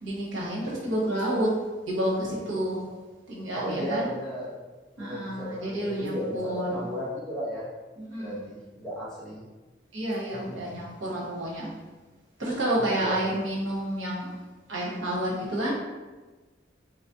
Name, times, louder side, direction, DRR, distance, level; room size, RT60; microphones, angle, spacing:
voice 1, 0.0-1.5 1.8-2.9 3.3-4.1 5.0-6.8 8.1-8.3 9.9-11.7 12.4-14.4 14.7-15.7, right 1 dB, 90° right, -3 dB, 1.0 m, -29 dB
voice 2, 3.5-4.5 5.0-7.7 8.2-9.5 10.3-10.9 12.8-13.2, equal, 5° left, -11 dB, 1.4 m, -35 dB
4.0 x 2.9 x 2.8 m, 1.2 s
head